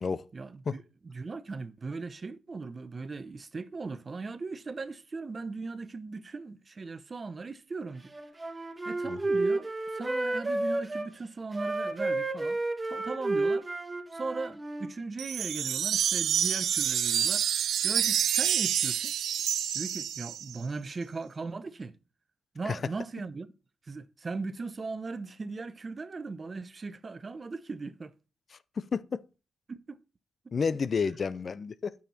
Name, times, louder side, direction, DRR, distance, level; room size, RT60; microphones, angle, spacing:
voice 1, 0.3-8.1 8.9-12.6 12.8-13.6 14.1-17.5 17.8-19.1 19.7-21.9 22.5-23.5 23.9-28.1 29.7-30.0, right 3 dB, 40° right, 0.8 m, -38 dB
Wind instrument woodwind instrument, 8.1-11.1 11.5-14.9, right 2 dB, 20° right, 1.7 m, -31 dB
sound 1, 15.2-20.6, right 9 dB, 75° right, 0.5 m, -28 dB
voice 2, 28.8-29.2 30.5-31.9, left 5 dB, 50° left, 0.6 m, -30 dB
9.1 x 7.2 x 4.3 m
supercardioid pair, 55°, 0 cm